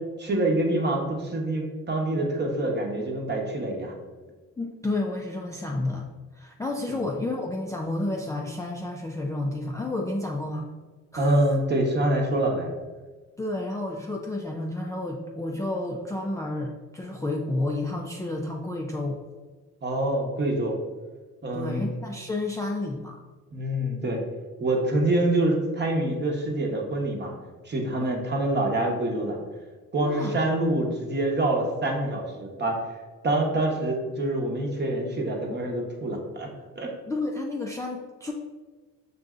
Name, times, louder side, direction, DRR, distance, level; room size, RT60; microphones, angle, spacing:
voice 1, 0.2-3.9 6.9-7.0 11.2-12.7 19.8-20.8 21.4-21.8 23.5-24.2 24.6-27.3 27.6-29.4 29.9-32.8 33.2-36.5 36.7-36.9, right 1 dB, 35° right, 0 dB, 0.9 m, -26 dB
voice 2, 4.6-6.1 6.3-10.7 11.1-11.4 13.4-19.2 21.5-23.2 28.0-28.2 30.0-30.4 37.1-38.3, left 2 dB, 10° left, 0 dB, 0.3 m, -31 dB
6.4 x 2.6 x 2.4 m, 1.3 s
cardioid pair, 90°, 30 cm